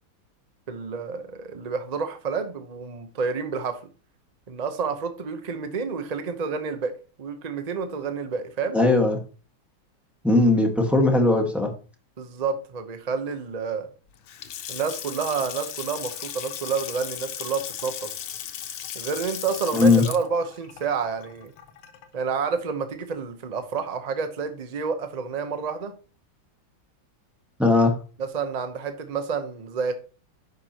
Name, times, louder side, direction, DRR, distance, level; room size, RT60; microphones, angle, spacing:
voice 1, 0.7-3.8 4.5-6.9 7.2-8.8 12.2-13.9 14.7-18.1 18.9-21.5 22.1-26.0 28.2-29.9, right 5 dB, 85° right, 0.3 m, -29 dB
voice 2, 8.7-9.2 10.2-11.7 19.7-20.1 27.6-27.9, left 2 dB, ahead, 1.1 m, -18 dB
Water tap faucet / Sink (filling or washing) / Splash splatter, 14.1-22.2, left 10 dB, 85° left, 1.7 m, -36 dB
9.2 x 6.0 x 2.9 m
omnidirectional pair, 2.2 m